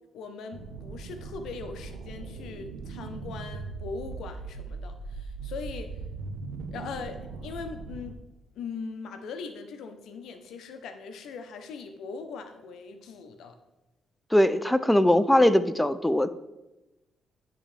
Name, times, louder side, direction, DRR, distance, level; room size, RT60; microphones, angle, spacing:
voice 1, 0.1-6.0 6.7-8.2 8.5-13.6, left 5 dB, 75° left, 7 dB, 0.6 m, -40 dB
sound 1, 0.5-8.1, right 4 dB, 90° right, 0.5 m, -39 dB
voice 2, 14.3-16.3, left 1 dB, 5° left, 12 dB, 0.4 m, -21 dB
10.0 x 3.6 x 3.3 m, 0.99 s
cardioid pair, 90°, 0 cm